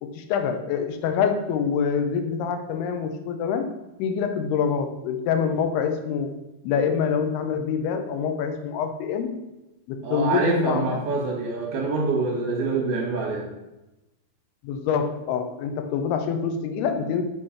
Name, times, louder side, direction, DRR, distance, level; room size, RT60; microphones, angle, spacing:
voice 1, 0.0-3.7 4.0-6.3 6.6-9.4 9.9-11.1 14.6-17.2, left 6 dB, 90° left, 7 dB, 2.7 m, -26 dB
voice 2, 10.0-13.4, right 4 dB, 65° right, -2 dB, 2.7 m, -25 dB
7.4 x 3.2 x 5.7 m, 0.98 s
omnidirectional pair, 4.5 m